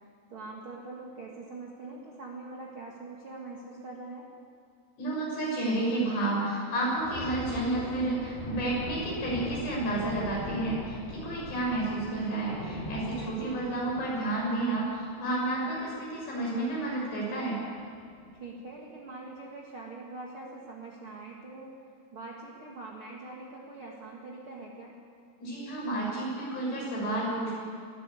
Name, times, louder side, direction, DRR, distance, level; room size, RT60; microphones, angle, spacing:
voice 1, 0.3-4.3 13.2-13.6 18.4-21.8 22.1-24.9, right 3 dB, 40° right, -2 dB, 2.1 m, -43 dB
voice 2, 5.0-17.6 25.4-27.5, right 2 dB, 80° left, -4 dB, 8.7 m, -31 dB
Thunder, 6.9-15.9 16.3-16.5 16.9-17.1 17.7-18.2, left 1 dB, 55° left, 6.3 m, -40 dB
21.5 x 14.5 x 8.5 m, 2.3 s
omnidirectional pair, 4.8 m